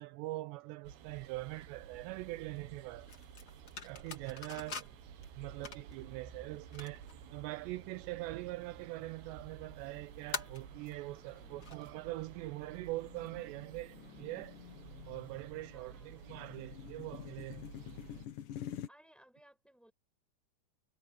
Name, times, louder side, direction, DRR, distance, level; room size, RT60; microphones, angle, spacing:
voice 1, 0.0-3.1 3.8-4.9 5.4-14.6 15.1-17.6, right 19 dB, 85° right, 2.5 m, -43 dB
sound 1, 0.8-18.3, right 7 dB, 65° right, 3.3 m, -53 dB
sound 2, 2.4-3.0 3.3-3.4 4.1-4.6 5.2-5.4 6.0-18.9, left 11 dB, 60° left, 2.5 m, -51 dB
sound 3, 2.5-11.9, left 4 dB, 40° left, 1.4 m, -48 dB
voice 2, 4.5-5.0 15.7-16.3 18.9-19.9, right 1 dB, ahead, 7.1 m, -64 dB
omnidirectional pair, 5.5 m